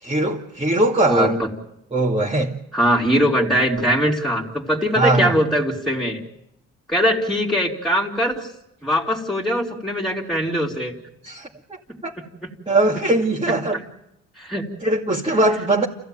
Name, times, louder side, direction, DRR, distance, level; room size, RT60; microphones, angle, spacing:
voice 1, 0.0-1.4 1.9-2.5 5.0-5.3 11.2-11.5 12.0-12.1 12.7-13.8 14.8-15.9, right 2 dB, 20° right, 2.5 m, -20 dB
voice 2, 1.0-1.5 2.7-6.2 6.9-8.5 8.8-10.9 12.2-12.5 14.4-14.7, equal, ahead, 3.3 m, -21 dB
28.5 x 15.5 x 9.2 m
cardioid pair, 90°, 30 cm